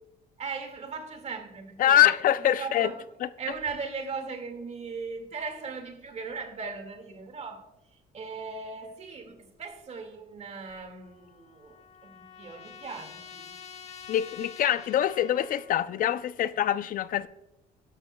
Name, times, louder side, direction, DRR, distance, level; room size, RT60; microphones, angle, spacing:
voice 1, 0.4-2.2 2.5-3.0 3.4-13.5, right 4 dB, 40° right, 2.0 m, -38 dB
voice 2, 1.8-2.9 14.1-17.3, left 11 dB, 55° left, 0.4 m, -24 dB
Trumpet, 11.0-15.7, left 7 dB, 40° left, 1.3 m, -47 dB
13.0 x 12.0 x 2.2 m
cardioid pair, 110°, 17 cm